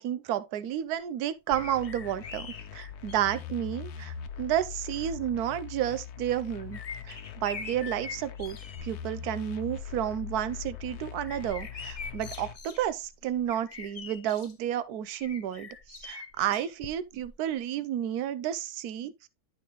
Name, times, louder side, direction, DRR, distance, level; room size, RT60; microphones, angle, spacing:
voice 1, 0.0-19.3, right 11 dB, 80° right, 1.2 m, -31 dB
sound 1, 1.5-12.5, left 8 dB, 85° left, 1.2 m, -42 dB
sound 2, 1.5-3.6 4.4-4.5 6.1-9.0 9.4-9.8 10.2-14.5 15.2-17.3 17.6-17.7, left 5 dB, 55° left, 0.4 m, -44 dB
10.5 x 4.7 x 2.9 m
omnidirectional pair, 1.6 m